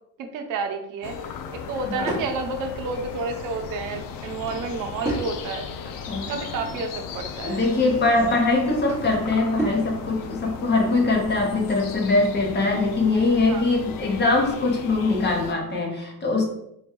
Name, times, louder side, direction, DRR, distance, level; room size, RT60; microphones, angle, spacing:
voice 1, 0.2-5.7 6.1-7.6 13.5-13.6, right 4 dB, 70° right, 5 dB, 0.7 m, -31 dB
sound 1, 1.0-15.5, left 7 dB, 75° left, 0.5 m, -37 dB
Drawer open or close / Wood, 1.3-2.3 4.0-5.3 5.9-7.0 8.3-9.9, right 2 dB, 10° right, 1.0 m, -34 dB
voice 2, 1.9-2.2 6.1-6.3 7.4-16.4, left 3 dB, 30° left, 1 dB, 0.8 m, -22 dB
3.5 x 2.3 x 4.4 m, 0.79 s
cardioid pair, 165°, 33 cm